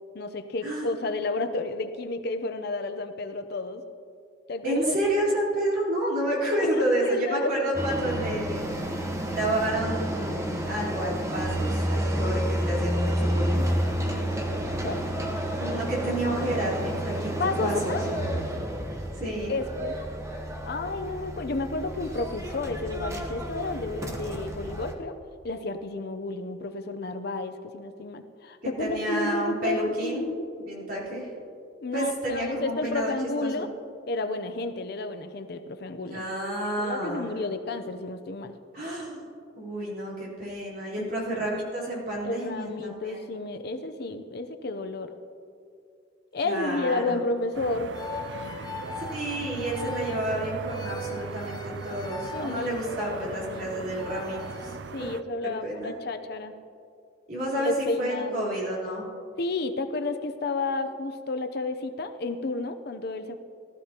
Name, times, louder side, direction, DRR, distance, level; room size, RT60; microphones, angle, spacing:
voice 1, 0.1-3.8 4.5-4.9 6.5-7.5 14.1-15.1 17.4-18.0 19.5-19.9 20.6-25.1 25.4-30.4 31.8-33.7 34.1-36.2 36.8-38.5 41.0-41.5 42.2-45.1 46.3-47.9 52.3-53.9 54.9-56.5 57.5-58.5 59.4-63.4, left 2 dB, 60° left, 9 dB, 0.7 m, -31 dB
voice 2, 4.6-8.6 9.3-13.7 15.6-18.0 19.1-19.5 28.6-30.2 30.6-31.3 31.9-33.1 33.4-33.7 36.1-37.3 38.7-39.2 39.6-43.2 46.4-47.2 49.0-55.1 55.4-55.9 57.3-59.1, right 1 dB, 50° right, -6 dB, 3.9 m, -30 dB
sound 1, 7.7-24.9, right 1 dB, 15° right, 1.0 m, -30 dB
sound 2, 47.5-55.2, right 5 dB, 70° right, 0.4 m, -39 dB
sound 3, 47.9-54.8, left 3 dB, 20° left, 0.8 m, -40 dB
18.5 x 13.5 x 2.9 m, 2.4 s
head